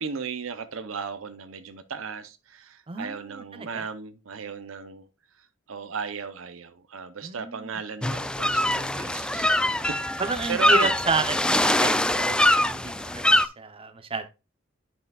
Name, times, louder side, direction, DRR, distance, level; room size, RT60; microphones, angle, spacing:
voice 1, 0.0-5.1 5.7-10.2 10.5-11.0, right 5 dB, 80° right, 0.7 m, -36 dB
voice 2, 2.9-3.8 7.2-7.8 10.2-14.3, right 4 dB, 30° right, 0.7 m, -31 dB
sound 1, 8.0-13.5, left 1 dB, 5° left, 0.3 m, -23 dB
10.5 x 5.6 x 2.3 m
head